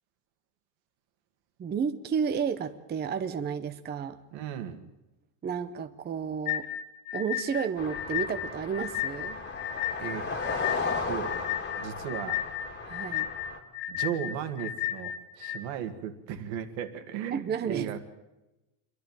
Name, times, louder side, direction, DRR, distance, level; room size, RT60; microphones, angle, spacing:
voice 1, 1.6-4.2 5.4-6.7 7.1-9.4 12.8-13.3 17.3-18.0, right 6 dB, 20° right, 9 dB, 0.7 m, -32 dB
voice 2, 4.3-4.8 10.0-10.3 11.1-11.3 11.8-12.4 13.9-18.0, right 9 dB, 75° right, 8 dB, 2.2 m, -36 dB
sound 1, 6.5-15.6, left 12 dB, 70° left, 1.5 m, -34 dB
sound 2, 7.8-13.6, left 4 dB, 25° left, 2.1 m, -35 dB
27.5 x 11.5 x 9.0 m, 1.0 s
cardioid pair, 160°, 46 cm